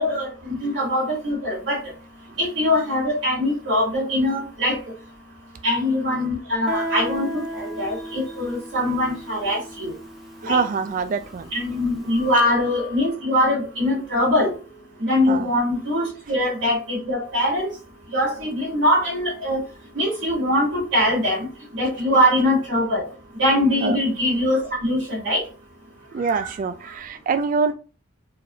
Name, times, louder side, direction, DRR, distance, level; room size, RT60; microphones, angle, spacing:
voice 1, 0.0-1.8 2.4-4.8 5.6-9.9 10.4-10.6 11.5-14.5 15.0-17.7 18.1-19.6 19.9-21.4 21.8-23.0 23.4-25.4, left 1 dB, 70° right, -4 dB, 2.4 m, -22 dB
Guitar, 6.7-12.1, equal, ahead, 0.9 m, -34 dB
voice 2, 10.4-11.5 15.3-15.5 23.8-24.0 26.1-27.7, right 5 dB, 40° right, 10 dB, 0.3 m, -24 dB
4.6 x 3.4 x 2.7 m, 0.34 s
head